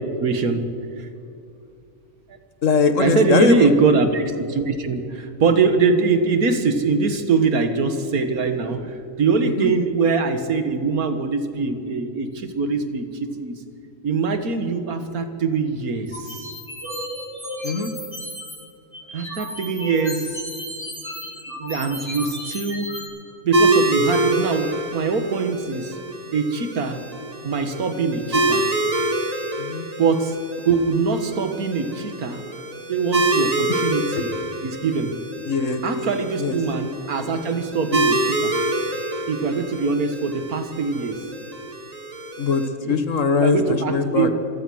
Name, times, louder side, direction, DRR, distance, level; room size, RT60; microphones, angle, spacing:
voice 1, 0.2-0.7 1.0-1.1 3.0-13.6 14.0-16.5 19.1-20.4 21.5-22.9 23.4-26.0 26.3-27.0 27.4-28.6 30.0-30.4 30.7-32.4 32.9-34.3 34.6-35.1 35.8-38.5 39.3-41.2 42.8-43.0 43.4-44.3, right 4 dB, 85° right, 8 dB, 2.0 m, -23 dB
voice 2, 2.6-3.7 9.4-9.7 17.6-17.9 29.6-29.9 34.2-34.3 35.5-35.8 36.4-36.6 42.4-42.6 42.9-44.3, left 5 dB, 60° left, 9 dB, 1.7 m, -21 dB
sound 1, 16.1-18.6 18.9-23.0, equal, 35° left, 4.9 m, -34 dB
sound 2, 23.5-42.7, right 1 dB, 25° right, 1.6 m, -26 dB
26.0 x 17.0 x 6.3 m, 2.6 s
omnidirectional pair, 1.5 m